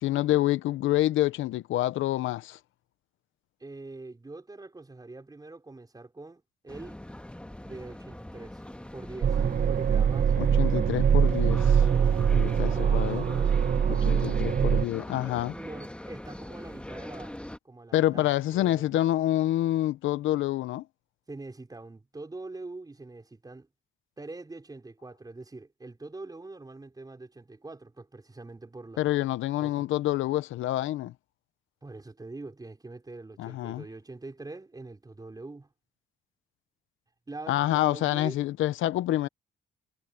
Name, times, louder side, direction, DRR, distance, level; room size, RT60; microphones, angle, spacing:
voice 1, 0.0-2.6 10.4-11.9 12.3-13.3 13.9-15.6 17.9-20.9 29.0-31.1 33.4-33.8 37.5-39.3, left 14 dB, 80° left, 0.7 m, -27 dB
voice 2, 3.6-7.0 7.6-8.6 8.9-9.4 9.7-10.4 12.4-12.9 14.6-14.7 15.4-18.9 21.3-23.7 24.2-29.1 29.6-29.8 31.8-35.7 37.3-38.4, right 2 dB, 20° right, 4.9 m, -44 dB
sound 1, 6.7-17.6, left 1 dB, 5° left, 1.4 m, -42 dB
sound 2, 9.2-14.9, right 7 dB, 40° right, 0.7 m, -23 dB
cardioid pair, 90°, 20 cm